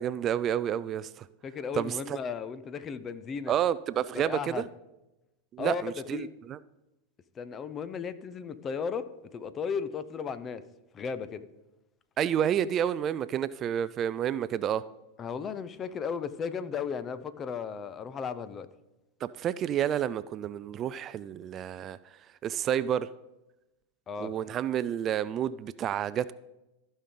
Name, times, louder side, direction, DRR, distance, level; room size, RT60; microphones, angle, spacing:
voice 1, 0.0-1.3 1.7-2.2 3.5-4.7 5.5-6.6 12.2-14.8 19.2-22.0 22.4-23.1 24.2-26.3, right 10 dB, 35° right, 17 dB, 0.3 m, -30 dB
voice 2, 1.4-3.5 4.1-4.6 5.6-5.8 6.1-6.3 7.4-9.1 9.3-10.6 10.9-11.5 15.2-18.7 24.1-24.3, left 6 dB, 30° left, 13 dB, 0.7 m, -35 dB
14.5 x 5.4 x 3.8 m, 0.97 s
hypercardioid pair, 100°, 0 cm